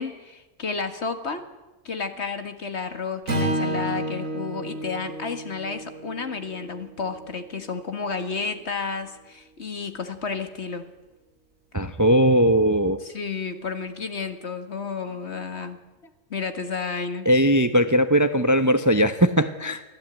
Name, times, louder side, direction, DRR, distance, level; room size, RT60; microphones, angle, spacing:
voice 1, 0.0-1.5 1.8-10.9 13.0-15.8 16.3-17.3, left 5 dB, 55° left, 9 dB, 2.0 m, -31 dB
Strum, 3.3-7.6, right 1 dB, 75° right, 3.3 m, -31 dB
voice 2, 11.7-13.0 17.2-19.8, equal, 15° right, 11 dB, 0.8 m, -19 dB
24.0 x 15.5 x 9.2 m, 1.0 s
omnidirectional pair, 1.4 m